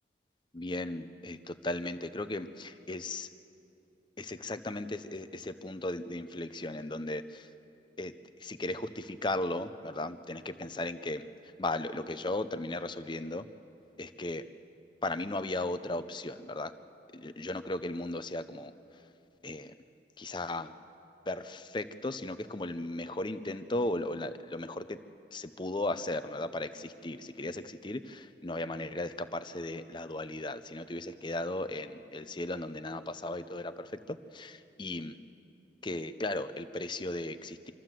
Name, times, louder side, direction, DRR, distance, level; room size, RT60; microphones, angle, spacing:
voice 1, 0.5-3.3 4.2-7.5 8.0-11.2 11.6-13.5 14.0-14.4 15.0-16.7 17.1-18.7 19.4-19.7 20.2-20.7 21.3-25.0 25.3-35.1 35.8-37.7, left 2 dB, 25° left, 11 dB, 0.7 m, -36 dB
26.0 x 14.0 x 7.6 m, 2.7 s
head